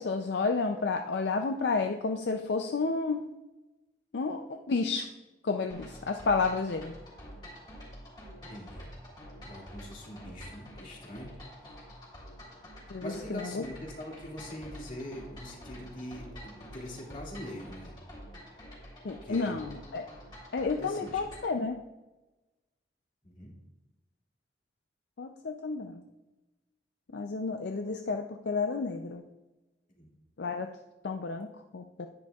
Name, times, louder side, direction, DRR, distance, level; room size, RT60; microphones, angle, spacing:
voice 1, 0.0-3.3 4.1-5.1 5.4-6.9 12.9-13.6 19.0-20.1 20.5-21.8 25.2-26.0 27.1-29.2 30.4-30.7 31.0-31.5 31.7-32.1, left 4 dB, 70° left, 5 dB, 0.5 m, -31 dB
sound 1, 5.7-21.6, equal, 25° left, 2.9 m, -48 dB
voice 2, 8.5-8.9 9.4-11.3 13.0-17.9 19.2-19.6 20.8-21.2 23.2-23.5 30.0-30.1, equal, 45° left, -2 dB, 2.2 m, -42 dB
10.0 x 9.8 x 2.4 m, 1.1 s
head